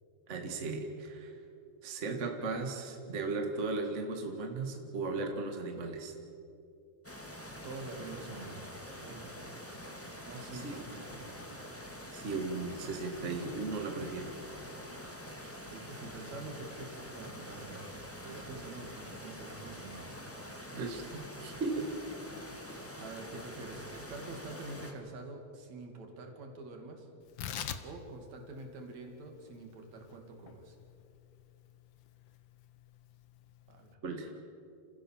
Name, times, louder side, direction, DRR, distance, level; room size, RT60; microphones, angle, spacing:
voice 1, 0.3-1.4 1.8-6.1 10.5-10.8 12.1-14.3 20.7-21.9 34.0-34.3, right 3 dB, 25° right, 3 dB, 1.8 m, -36 dB
sound 1, 7.0-24.9, equal, 5° left, 1.4 m, -46 dB
voice 2, 7.6-8.7 9.0-9.2 10.3-11.5 15.7-17.9 18.2-20.2 23.0-27.1 27.8-30.8 33.7-34.0, right 2 dB, 60° right, 3 dB, 3.8 m, -46 dB
Tearing, 27.2-33.9, left 8 dB, 85° left, 1.0 m, -46 dB
29.0 x 16.0 x 7.4 m, 2.6 s
omnidirectional pair, 3.6 m